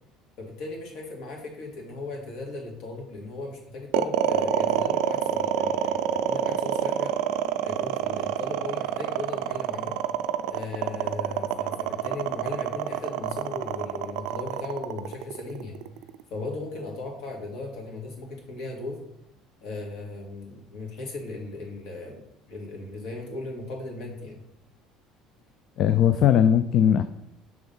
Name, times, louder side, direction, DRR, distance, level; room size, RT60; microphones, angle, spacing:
voice 1, 0.4-7.2 7.6-10.0 10.5-15.8 16.3-19.0 19.6-22.2 22.5-24.4, left 2 dB, 65° left, 1 dB, 2.0 m, -37 dB
sound 1, 3.9-16.2, right 10 dB, 80° right, 0.4 m, -27 dB
voice 2, 25.8-27.0, left 9 dB, 50° left, 11 dB, 0.3 m, -19 dB
6.1 x 3.6 x 5.4 m, 0.80 s
cardioid pair, 135°, 0 cm